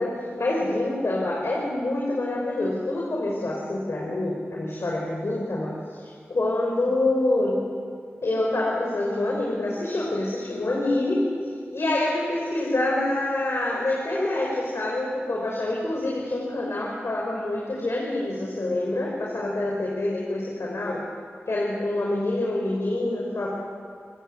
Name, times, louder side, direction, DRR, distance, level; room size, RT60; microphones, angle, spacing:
voice 1, 0.0-7.6 8.2-11.3 11.7-21.0 21.5-23.5, left 2 dB, 70° left, -3 dB, 5.9 m, -26 dB
29.0 x 20.0 x 8.5 m, 2.1 s
wide cardioid pair, 55°, 5 cm